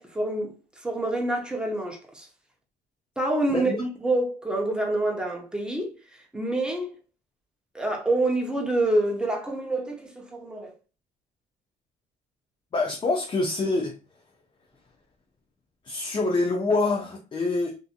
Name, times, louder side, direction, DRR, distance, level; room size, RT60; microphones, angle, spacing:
voice 1, 0.0-2.3 3.2-7.0 7.7-10.7, right 2 dB, 5° right, 0.7 m, -27 dB
voice 2, 12.7-13.9 15.9-17.8, left 3 dB, 30° left, 0.5 m, -25 dB
2.7 x 2.5 x 2.4 m
cardioid pair, 110°, 17 cm